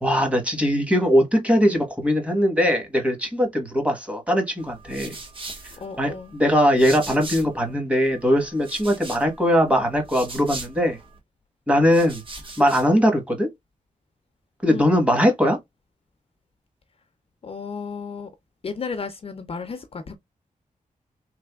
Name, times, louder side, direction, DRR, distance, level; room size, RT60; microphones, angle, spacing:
voice 1, 0.0-5.1 6.0-11.0 11.7-12.2 12.6-13.5 14.6-15.6, equal, 10° right, 1.2 m, -20 dB
sound 1, 4.6-7.7 8.0-11.2 11.7-13.0, right 3 dB, 40° right, 1.2 m, -40 dB
voice 2, 5.8-6.4 14.7-14.9 17.4-18.3 18.6-20.2, left 5 dB, 45° left, 0.5 m, -33 dB
3.5 x 3.3 x 2.3 m
wide cardioid pair, 155°, 14 cm